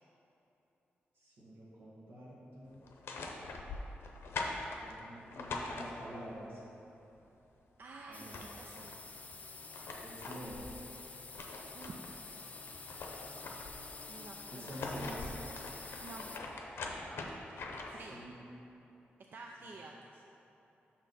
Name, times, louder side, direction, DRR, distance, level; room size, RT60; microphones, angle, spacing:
voice 1, 1.1-2.8 4.8-6.6 8.1-8.4 10.0-10.8 14.5-15.2 18.1-18.4, equal, 80° right, -9 dB, 1.5 m, -47 dB
sound 1, 2.8-6.4 7.8-7.9 8.1-9.0 9.5-12.2 12.6-13.9 14.5-18.1, left 3 dB, 80° left, 0.7 m, -43 dB
voice 2, 7.8-9.0 11.7-12.0 14.1-15.3 16.0-16.3 17.9-18.2 19.3-20.2, right 3 dB, 60° right, 0 dB, 0.4 m, -50 dB
sound 2, 8.1-16.4, left 4 dB, 40° left, 0.4 m, -49 dB
6.3 x 5.9 x 4.1 m, 3.0 s
cardioid pair, 85°, 4 cm